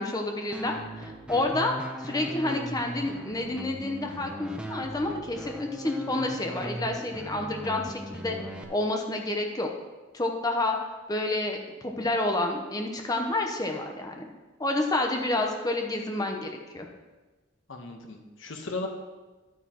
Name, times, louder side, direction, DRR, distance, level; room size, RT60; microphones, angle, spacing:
voice 1, 0.0-8.4 8.7-9.7 10.1-10.8 11.1-14.3 14.6-16.9, left 2 dB, 20° left, 2 dB, 0.9 m, -29 dB
sound 1, 0.5-8.6, equal, 5° right, 0.7 m, -39 dB
voice 2, 17.7-18.9, left 3 dB, 70° left, 3 dB, 1.2 m, -36 dB
10.5 x 9.3 x 3.0 m, 1.2 s
head